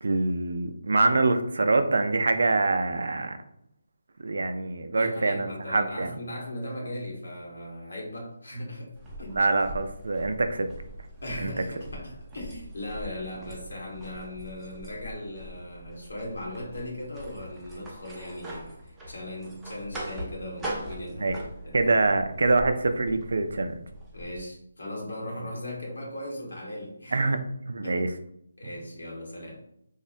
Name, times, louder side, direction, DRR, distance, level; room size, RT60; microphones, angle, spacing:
voice 1, 0.0-3.4 4.2-6.1 9.3-10.7 11.4-11.6 21.2-21.4 21.7-23.8 27.1-27.4 27.7-28.1 28.6-28.7, right 3 dB, 70° right, 8 dB, 0.3 m, -25 dB
voice 2, 4.9-9.4 11.2-22.0 24.1-27.3 27.8-28.2 28.6-29.6, left 1 dB, 85° left, -2 dB, 1.3 m, -38 dB
sound 1, 8.9-24.4, right 1 dB, 5° right, 0.4 m, -42 dB
3.0 x 2.1 x 2.6 m, 0.75 s
figure-of-eight pair, 165°, 0 cm